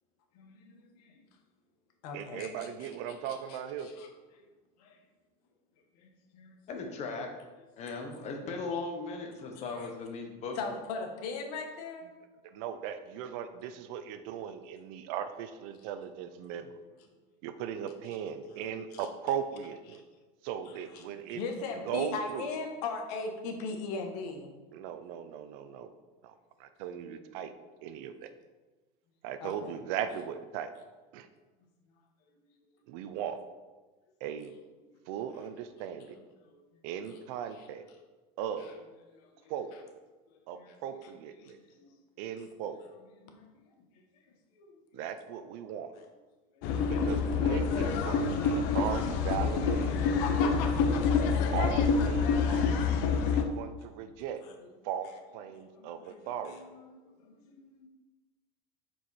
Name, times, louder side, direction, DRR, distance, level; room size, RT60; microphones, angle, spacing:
voice 1, 0.3-1.2 2.0-4.1 4.3-4.5 4.8-5.0 6.0-6.5 7.8-7.9 9.6-9.9 10.5-12.1 18.9-19.1 19.9-20.0 20.6-24.5 29.4-29.7 34.8-35.0 36.4-36.8 37.5-37.7 38.6-38.7 39.1-39.5 40.3-41.1 41.4-41.5 41.8-42.0 43.2-43.5 43.8-43.9 44.5-45.0 46.5-46.8 52.3-52.6 53.8-53.9 54.4-54.5 55.7-57.9, left 4 dB, 75° left, 4 dB, 1.3 m, -41 dB
voice 2, 2.1-3.9 12.4-16.8 17.4-20.0 20.4-21.4 21.8-22.5 24.7-25.9 26.2-26.3 26.6-27.5 27.8-28.3 29.2-30.7 31.1-31.3 32.9-33.4 34.2-34.5 35.1-36.2 36.8-37.8 38.4-38.7 39.5-39.7 40.5-41.6 42.2-42.8 44.9-45.9 46.9-50.6 51.5-52.7 53.3-54.4 54.8-56.6, right 9 dB, 65° right, 10 dB, 0.6 m, -38 dB
voice 3, 6.7-7.3 7.8-10.6, left 4 dB, 35° left, 3 dB, 1.2 m, -37 dB
sound 1, 46.6-53.4, left 5 dB, 55° left, 0.7 m, -27 dB
7.7 x 4.7 x 4.2 m, 1.3 s
cardioid pair, 155°, 20 cm